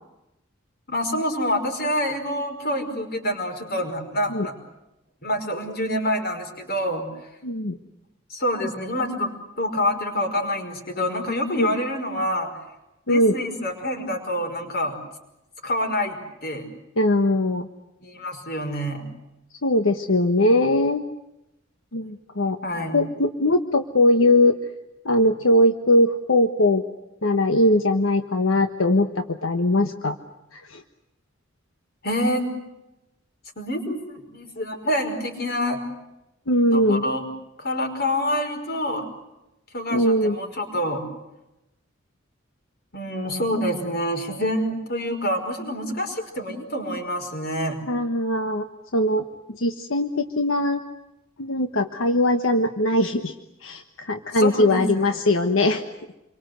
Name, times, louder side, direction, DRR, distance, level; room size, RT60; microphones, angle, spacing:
voice 1, 0.9-4.5 5.2-7.1 8.3-12.5 13.1-15.0 15.6-16.7 18.0-19.1 22.6-23.0 32.0-32.5 33.6-35.8 36.7-37.2 37.6-39.1 39.7-41.0 42.9-47.8 54.3-55.2, equal, 50° left, 5 dB, 5.3 m, -27 dB
voice 2, 7.4-7.8 11.6-11.7 13.1-13.3 17.0-17.7 19.6-21.0 21.9-22.6 22.9-24.6 25.0-26.8 27.2-30.2 30.5-30.8 36.5-37.0 39.9-40.4 47.9-48.7 48.9-49.2 49.5-50.8 51.4-53.3 53.6-55.8, left 1 dB, 85° left, 6 dB, 1.3 m, -20 dB
28.0 x 24.0 x 8.0 m, 0.92 s
head